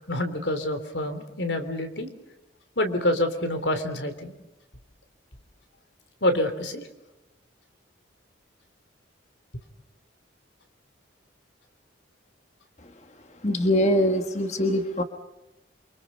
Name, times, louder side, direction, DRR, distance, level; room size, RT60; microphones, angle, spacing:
voice 1, 0.1-2.1 2.8-4.3 6.2-6.9, left 1 dB, 80° left, 8 dB, 3.2 m, -27 dB
voice 2, 13.4-15.0, equal, 40° left, 6 dB, 1.5 m, -23 dB
28.5 x 24.5 x 5.5 m, 0.96 s
head